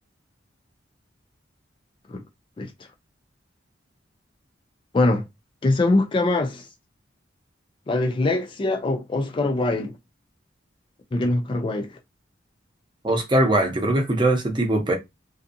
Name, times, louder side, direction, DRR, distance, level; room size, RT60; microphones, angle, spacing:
voice 1, 5.6-6.7 7.9-10.0 11.1-11.9, left 2 dB, 25° left, 0.3 m, -23 dB
voice 2, 13.0-14.9, right 1 dB, 25° right, 0.7 m, -21 dB
2.5 x 2.3 x 2.5 m
head